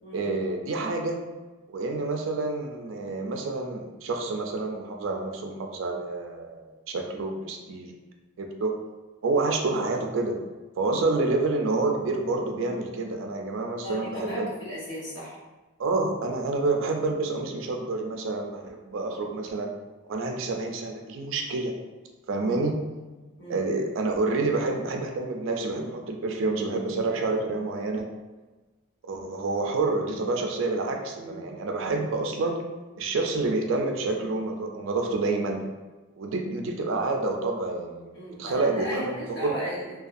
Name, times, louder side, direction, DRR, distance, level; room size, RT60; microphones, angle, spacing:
voice 1, 0.1-1.2 1.7-7.9 8.4-8.7 9.2-10.3 10.8-14.5 15.8-19.7 20.1-21.7 22.3-22.7 23.5-28.0 29.1-32.6 33.0-35.6 36.2-39.5, right 3 dB, 70° right, 2 dB, 0.4 m, -28 dB
voice 2, 13.8-15.4 23.4-23.6 31.2-31.4 38.1-39.9, equal, 55° left, -6 dB, 0.9 m, -36 dB
2.5 x 2.2 x 2.5 m, 1.2 s
head